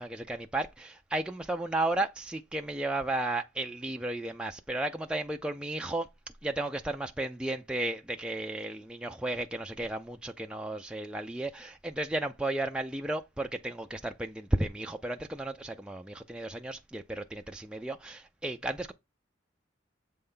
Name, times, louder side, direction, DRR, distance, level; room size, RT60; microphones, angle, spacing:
voice 1, 0.0-6.1 6.4-18.9, right 2 dB, 5° right, 0.3 m, -34 dB
7.6 x 3.4 x 5.5 m
head